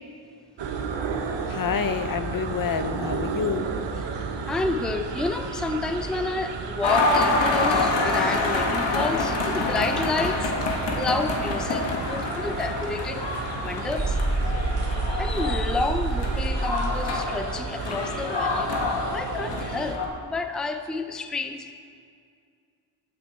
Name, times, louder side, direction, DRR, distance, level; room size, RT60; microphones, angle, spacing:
sound 1, 0.6-20.0, right 5 dB, 80° right, 1.1 m, -33 dB
voice 1, 1.5-3.7, left 7 dB, 50° left, 11 dB, 0.6 m, -28 dB
voice 2, 4.5-10.7 10.9-13.3 13.6-14.2 15.1-18.8 19.1-21.7, left 3 dB, ahead, 7 dB, 0.4 m, -30 dB
sound 2, 6.8-20.1, left 3 dB, 75° left, 1.8 m, -27 dB
sound 3, 14.0-16.6, right 3 dB, 20° right, 0.8 m, -27 dB
15.0 x 9.5 x 4.3 m, 2.3 s
wide cardioid pair, 165°, 43 cm